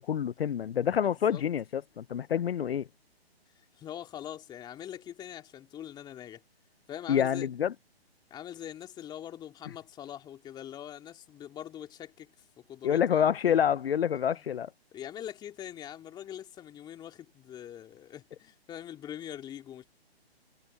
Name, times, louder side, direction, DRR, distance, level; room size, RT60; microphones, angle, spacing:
voice 1, 0.0-2.9 7.1-7.7 12.8-14.7, left 9 dB, 70° left, 0.7 m, -27 dB
voice 2, 0.6-1.4 3.8-6.4 6.9-7.5 8.3-12.3 12.7-13.6 14.3-14.4 14.9-19.8, left 11 dB, 15° left, 2.8 m, -43 dB
hypercardioid pair, 145°, 31 cm